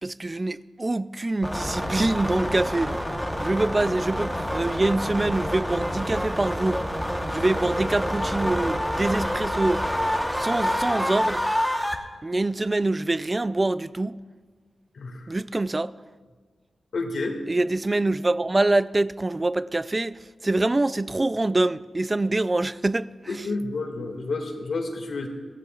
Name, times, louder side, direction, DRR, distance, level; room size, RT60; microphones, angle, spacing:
voice 1, 0.0-2.9 3.4-6.8 7.3-9.9 10.3-11.4 12.2-14.2 15.3-15.9 17.5-23.5, right 2 dB, 25° right, 0.3 m, -25 dB
sound 1, 1.4-12.0, equal, ahead, 1.1 m, -27 dB
voice 2, 14.9-15.3 16.9-17.4 23.3-25.3, left 3 dB, 70° left, 2.1 m, -30 dB
25.0 x 16.0 x 2.4 m
wide cardioid pair, 100°, 0 cm